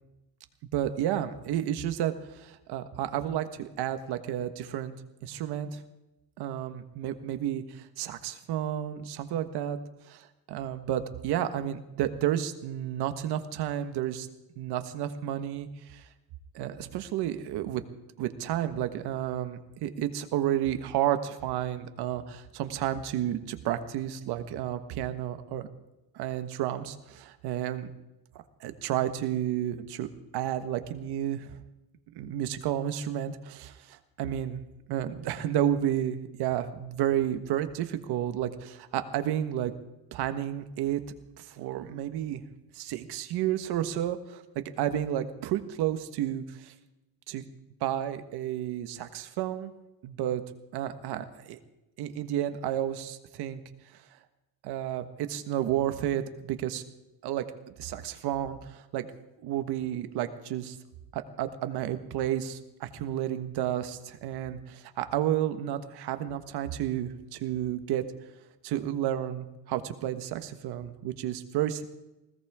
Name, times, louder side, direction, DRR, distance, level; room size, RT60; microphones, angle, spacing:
voice 1, 0.7-4.9 5.2-5.8 6.4-9.8 10.1-14.3 14.6-16.0 16.5-17.8 18.2-25.7 26.1-27.9 28.6-31.5 32.1-34.6 34.9-39.7 40.1-41.0 41.4-42.4 42.7-46.7 47.3-47.4 47.8-49.7 50.0-50.4 50.7-51.6 52.0-53.6 54.6-56.8 57.2-57.4 57.8-59.1 59.4-60.8 61.1-68.0 68.6-71.8, right 11 dB, 75° right, 9 dB, 1.5 m, -31 dB
19.5 x 17.0 x 3.7 m, 0.97 s
cardioid pair, 155°, 40 cm